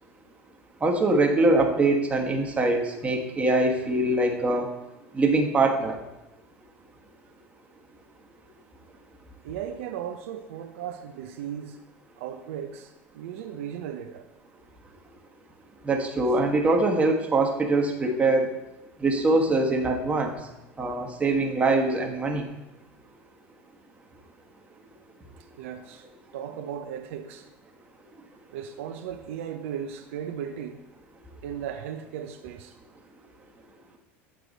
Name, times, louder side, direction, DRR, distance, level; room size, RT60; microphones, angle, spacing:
voice 1, 0.8-4.7 5.1-6.0 15.8-18.5 19.0-20.4 20.8-22.5, right 2 dB, 20° right, 1.2 m, -23 dB
voice 2, 9.4-11.8 12.2-14.3 25.6-26.0 26.3-27.4 28.5-30.8 31.4-32.7, right 9 dB, 75° right, 0.5 m, -36 dB
8.0 x 4.7 x 3.9 m
hypercardioid pair, 100°, 7 cm